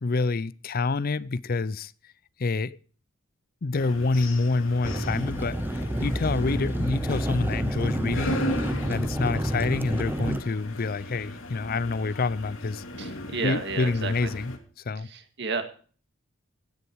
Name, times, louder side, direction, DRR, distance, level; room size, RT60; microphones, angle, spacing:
voice 1, 0.0-1.9 2.4-2.8 3.6-8.4 8.9-12.8 13.4-14.5 14.9-15.1, left 3 dB, 45° left, 0.5 m, -27 dB
sound 1, 3.7-14.6, left 1 dB, 70° left, 2.5 m, -37 dB
sound 2, 4.8-10.4, right 1 dB, 10° right, 0.7 m, -29 dB
voice 2, 13.0-14.3 15.0-15.6, right 4 dB, 55° right, 2.0 m, -32 dB
16.0 x 10.0 x 4.7 m
head